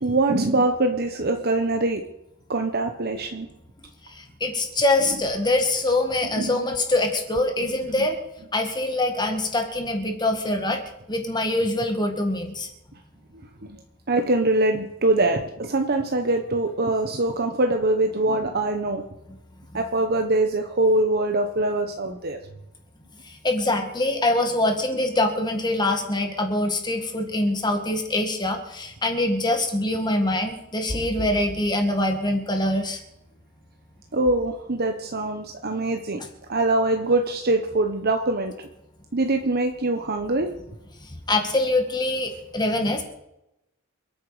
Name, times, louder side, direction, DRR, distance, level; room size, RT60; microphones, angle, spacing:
voice 1, 0.0-2.0 2.5-3.5 6.4-6.6 13.7-13.8 14.1-19.1 19.7-22.4 34.1-36.2 36.5-38.5 39.1-40.5, right 2 dB, 45° right, 5 dB, 1.2 m, -23 dB
voice 2, 4.4-8.2 8.5-10.8 11.1-12.7 19.7-19.8 23.3-33.0 41.3-43.0, left 2 dB, 20° left, 4 dB, 2.0 m, -24 dB
28.0 x 9.3 x 5.0 m, 0.88 s
head